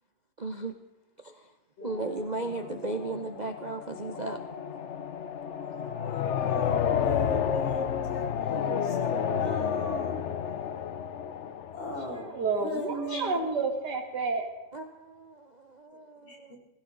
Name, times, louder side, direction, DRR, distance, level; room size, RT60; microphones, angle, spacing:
voice 1, 0.4-0.8 1.2-1.5 1.8-4.8 14.7-16.5, right 2 dB, 40° right, 7 dB, 0.6 m, -36 dB
voice 2, 1.8-2.5 2.7-2.9 5.4-10.2 11.7-12.3 12.6-13.5 16.3-16.6, right 1 dB, 90° left, 0 dB, 4.3 m, -40 dB
sound 1, 1.9-12.7, left 8 dB, 55° left, 0.8 m, -31 dB
voice 3, 12.2-14.5, right 4 dB, 60° right, 5 dB, 2.4 m, -30 dB
16.5 x 16.5 x 4.0 m, 1.0 s
omnidirectional pair, 2.0 m